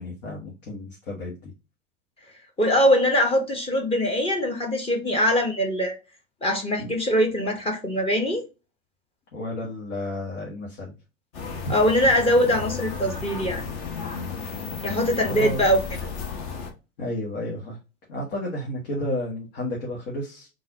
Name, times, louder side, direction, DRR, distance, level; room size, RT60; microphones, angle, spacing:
voice 1, 0.0-1.5 6.8-6.9 9.3-10.9 14.9-15.0 15.3-15.7 17.0-17.8 18.1-20.5, left 1 dB, 60° left, 1.5 m, -32 dB
voice 2, 2.6-6.0 6.4-8.4 11.7-13.6 14.8-15.8, equal, 15° left, 0.9 m, -22 dB
sound 1, 11.3-16.7, left 5 dB, 40° left, 1.2 m, -33 dB
3.8 x 2.6 x 2.8 m
hypercardioid pair, 95°, 43 cm